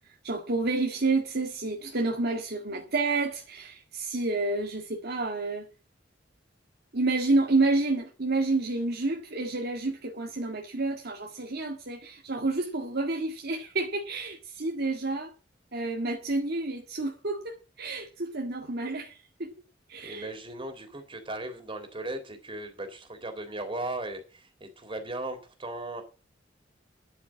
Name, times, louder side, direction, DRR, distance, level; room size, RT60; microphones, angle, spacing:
voice 1, 0.2-5.7 6.9-15.3 15.7-19.5 19.9-20.3, right 3 dB, 55° right, 1.8 m, -29 dB
voice 2, 20.0-26.0, right 2 dB, 30° right, 3.4 m, -37 dB
11.0 x 8.3 x 7.4 m
head